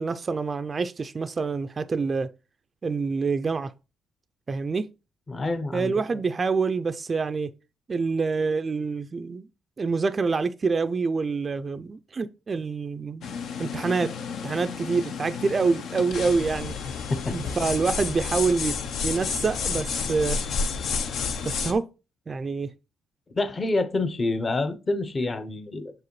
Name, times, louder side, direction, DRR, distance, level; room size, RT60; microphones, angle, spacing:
voice 1, 0.0-2.3 2.8-3.7 4.5-4.9 5.7-7.5 7.9-9.5 9.8-13.3 13.6-14.1 14.4-16.8 17.3-20.4 21.4-21.9 22.3-22.7, right 4 dB, 35° right, 0.3 m, -26 dB
voice 2, 5.3-6.2 17.1-17.5 23.3-25.9, left 2 dB, 30° left, 0.7 m, -28 dB
sound 1, 13.2-21.7, left 5 dB, 70° left, 0.6 m, -31 dB
6.4 x 4.8 x 3.1 m
cardioid pair, 90°, 0 cm